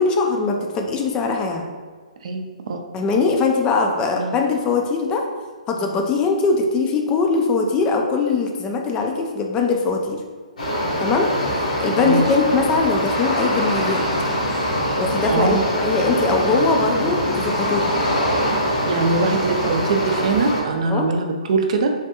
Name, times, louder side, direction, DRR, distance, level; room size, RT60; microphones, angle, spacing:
voice 1, 0.0-1.7 2.9-5.2 5.7-10.2 11.0-11.3 11.8-14.0 15.0-17.9 20.9-21.1, left 4 dB, 20° left, 2 dB, 0.3 m, -21 dB
voice 2, 2.2-2.8 4.1-4.3 12.0-12.2 15.3-15.6 18.9-21.9, right 3 dB, 60° right, 4 dB, 0.4 m, -22 dB
sound 1, 10.6-20.6, equal, 85° left, 1.1 m, -23 dB
3.4 x 2.2 x 2.8 m, 1.5 s
hypercardioid pair, 140°, 4 cm